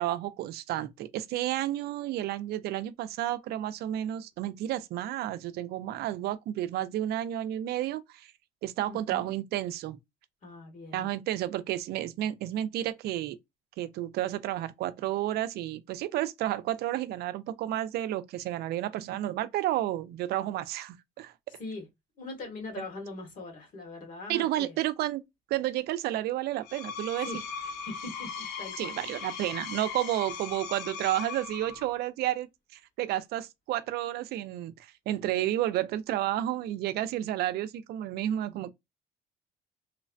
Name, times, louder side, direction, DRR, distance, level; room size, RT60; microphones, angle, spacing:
voice 1, 0.0-8.3 8.6-10.0 10.9-13.4 13.8-21.3 24.3-25.2 25.5-27.3 28.8-34.7 35.1-38.7, right 13 dB, 70° right, 0.4 m, -31 dB
voice 2, 8.9-9.3 10.4-11.1 21.6-21.9 22.2-24.8 27.2-27.5 27.7-29.5, left 2 dB, 55° left, 1.6 m, -42 dB
Screech, 26.5-32.0, left 6 dB, 85° left, 0.6 m, -39 dB
3.1 x 2.1 x 2.5 m
cardioid pair, 110°, 17 cm